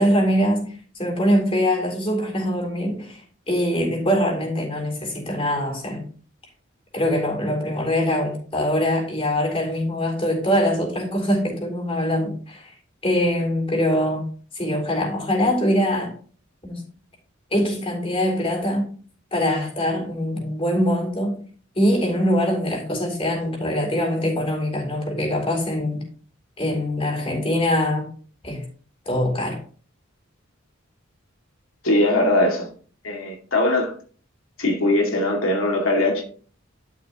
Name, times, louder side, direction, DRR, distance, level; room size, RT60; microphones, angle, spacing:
voice 1, 0.0-3.2 3.5-6.1 6.9-12.7 13.0-14.3 14.5-16.1 16.6-16.8 17.5-18.9 19.3-21.4 21.8-26.1 26.6-28.1 28.4-28.7 29.1-29.6, equal, 30° left, 3.6 m, -23 dB
voice 2, 31.8-32.7 33.0-33.9 34.6-36.2, left 1 dB, 90° left, 2.2 m, -20 dB
11.5 x 7.3 x 2.9 m
head